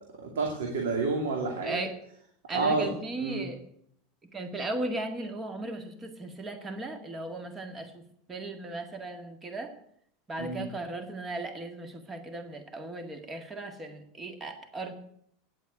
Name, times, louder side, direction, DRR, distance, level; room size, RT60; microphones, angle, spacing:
voice 1, 0.2-1.8 2.5-2.9 3.2-3.5 10.4-10.7, right 3 dB, 90° right, 1 dB, 2.5 m, -29 dB
voice 2, 1.6-2.0 2.5-3.6 4.2-9.7 10.3-14.9, right 2 dB, 25° right, 7 dB, 1.9 m, -37 dB
9.9 x 8.2 x 9.8 m, 0.70 s
supercardioid pair, 115°, 0 cm